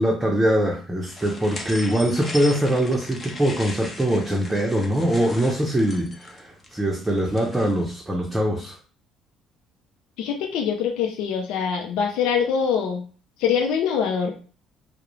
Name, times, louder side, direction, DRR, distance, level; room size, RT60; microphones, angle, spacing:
voice 1, 0.0-8.8, right 1 dB, 15° right, -1 dB, 0.6 m, -23 dB
sound 1, 1.1-7.9, left 2 dB, 30° left, 0.7 m, -38 dB
voice 2, 10.2-13.0 13.4-14.4, left 7 dB, 75° left, 3 dB, 0.4 m, -24 dB
2.3 x 2.0 x 3.1 m, 0.38 s
hypercardioid pair, 65°, 0 cm